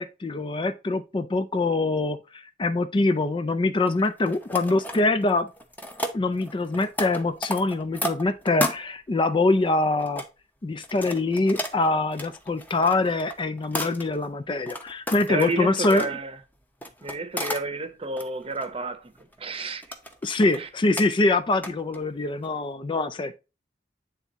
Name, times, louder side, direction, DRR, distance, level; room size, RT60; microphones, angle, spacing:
voice 1, 0.0-5.5 6.1-10.2 10.6-16.1 20.2-23.4, left 2 dB, 30° left, 0.4 m, -24 dB
sound 1, 3.9-5.3 5.6-8.8 9.5-10.2 10.8-14.2 14.7-16.1 16.8-17.6 18.0-18.7 19.2-19.5 19.8-20.6 21.0-21.1 21.6-22.1 22.4-22.5, left 1 dB, 10° left, 0.9 m, -33 dB
voice 2, 15.3-16.4 17.0-19.1 19.4-19.8 20.6-20.7, right 3 dB, 30° right, 0.8 m, -30 dB
9.0 x 3.5 x 4.1 m
head